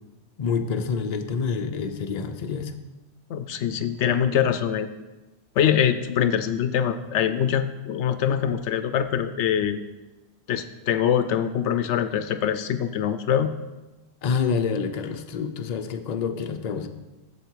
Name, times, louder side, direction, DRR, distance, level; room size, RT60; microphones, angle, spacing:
voice 1, 0.4-2.7 14.2-16.9, left 5 dB, 45° left, 6 dB, 0.7 m, -27 dB
voice 2, 3.3-4.9 5.6-9.8 10.5-13.5, left 9 dB, 85° left, 11 dB, 0.9 m, -24 dB
8.3 x 7.2 x 4.6 m, 1.1 s
omnidirectional pair, 1.1 m